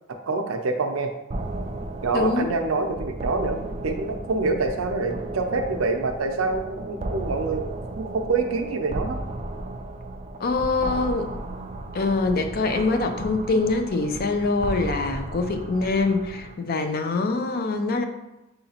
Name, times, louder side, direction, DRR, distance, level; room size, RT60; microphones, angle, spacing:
voice 1, 0.3-1.1 2.0-7.6 7.9-9.2, right 3 dB, 80° right, 5 dB, 0.6 m, -26 dB
sound 1, 1.3-16.5, right 2 dB, 30° right, 0.3 m, -34 dB
voice 2, 2.1-2.5 10.4-11.3 11.9-18.0, left 3 dB, 45° left, 6 dB, 0.4 m, -24 dB
6.6 x 2.8 x 2.8 m, 0.97 s
head